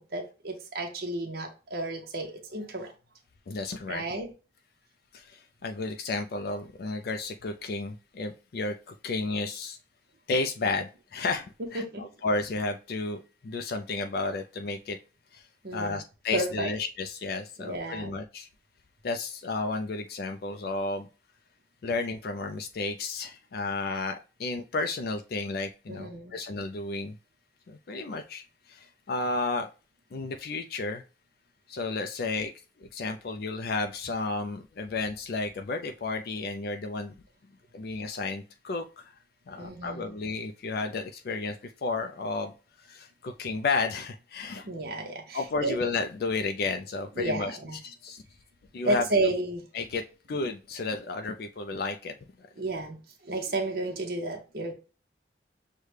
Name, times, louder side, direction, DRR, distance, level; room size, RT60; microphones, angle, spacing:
voice 1, 0.0-2.9 3.9-4.3 11.7-12.1 15.6-16.0 16.3-16.7 17.6-18.2 25.9-26.4 39.6-40.1 44.7-45.8 47.2-47.8 48.8-49.7 52.6-54.7, right 2 dB, 55° right, 1 dB, 0.8 m, -32 dB
voice 2, 3.5-4.0 5.1-9.8 10.3-11.5 11.7-15.0 15.3-15.4 15.7-18.5 19.0-21.1 21.8-27.1 27.7-29.7 30.1-31.0 31.7-32.5 32.9-37.1 37.7-39.1 39.5-42.5 42.8-44.7 45.3-47.6 47.8-48.2 48.7-49.0 49.7-50.0 50.3-52.5, left 3 dB, 55° left, 5 dB, 0.3 m, -32 dB
6.4 x 2.2 x 3.2 m, 0.34 s
head